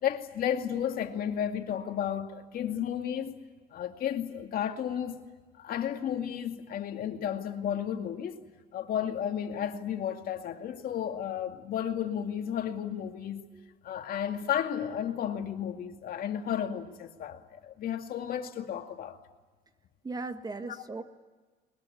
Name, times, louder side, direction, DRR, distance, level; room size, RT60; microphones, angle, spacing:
voice 1, 0.0-5.2 5.6-8.5 8.7-13.4 13.8-19.2 20.7-20.8, left 9 dB, 60° left, 2.3 m, -33 dB
voice 2, 20.0-21.0, right 3 dB, 25° right, 1.7 m, -38 dB
21.5 x 21.0 x 9.9 m
cardioid pair, 110°, 17 cm